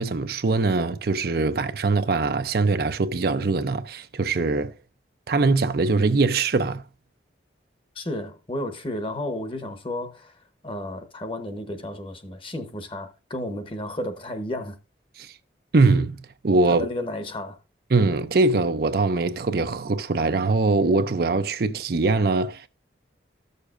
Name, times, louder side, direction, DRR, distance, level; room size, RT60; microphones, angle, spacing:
voice 1, 0.0-4.7 5.3-6.8 15.2-15.3 15.7-16.9 17.9-22.7, right 3 dB, 55° right, 0.5 m, -22 dB
voice 2, 7.9-14.8 16.7-17.6, left 1 dB, 30° left, 1.0 m, -32 dB
14.0 x 6.6 x 2.5 m
head